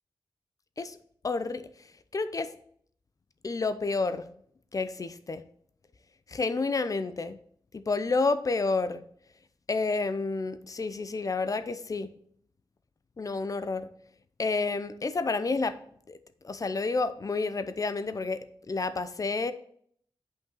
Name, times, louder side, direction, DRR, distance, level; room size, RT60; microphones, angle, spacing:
voice 1, 1.2-2.5 3.4-4.4 4.7-5.4 6.3-7.4 7.7-9.0 9.7-12.1 13.2-13.9 14.4-15.8 16.1-16.2 16.4-18.4 18.7-19.5, left 3 dB, 40° left, 12 dB, 0.6 m, -30 dB
8.1 x 5.5 x 3.9 m, 0.63 s
wide cardioid pair, 100°, 9 cm